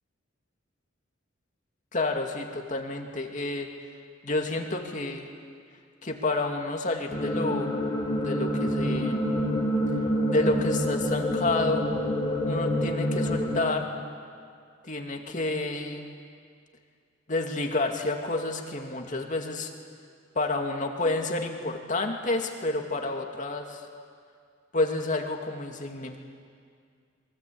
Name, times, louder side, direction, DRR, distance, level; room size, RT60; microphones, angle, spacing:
voice 1, 1.9-3.7 4.2-5.3 6.0-7.8 8.1-9.3 10.3-11.9 12.5-13.9 14.8-16.2 17.3-19.7 20.3-23.9 24.7-26.2, left 2 dB, 40° left, 2 dB, 2.4 m, -29 dB
sound 1, 7.1-13.6, equal, 20° left, 3.6 m, -27 dB
28.0 x 23.0 x 8.7 m, 2.2 s
head